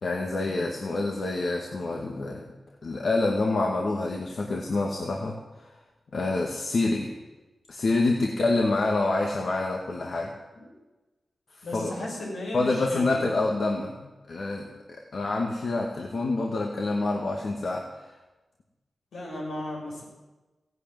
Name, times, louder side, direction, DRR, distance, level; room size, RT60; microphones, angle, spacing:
voice 1, 0.0-2.6 2.8-5.7 6.1-7.1 7.7-10.3 11.6-12.0 12.5-18.1, left 2 dB, 65° left, 0 dB, 2.1 m, -27 dB
voice 2, 11.6-13.2 19.1-20.0, left 1 dB, 90° left, -3 dB, 7.1 m, -36 dB
16.0 x 9.2 x 9.2 m, 1.1 s
cardioid pair, 50°, 0 cm